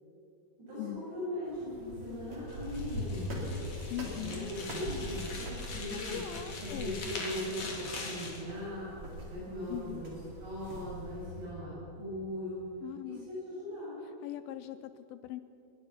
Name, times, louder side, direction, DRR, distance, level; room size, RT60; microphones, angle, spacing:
voice 1, 0.7-3.7 4.2-6.2 6.6-8.9 9.2-10.1 10.4-12.6 13.0-14.0, left 1 dB, 75° right, -9 dB, 9.3 m, -39 dB
sound 1, 1.4-11.5, left 1 dB, 35° right, 4.1 m, -42 dB
sound 2, 2.5-8.4, left 3 dB, 45° left, 4.2 m, -43 dB
voice 2, 3.9-4.5 5.9-7.0 9.7-10.0 12.8-13.3 14.2-15.4, left 13 dB, 85° left, 11 dB, 2.1 m, -41 dB
22.0 x 20.5 x 5.9 m, 2.7 s
omnidirectional pair, 4.8 m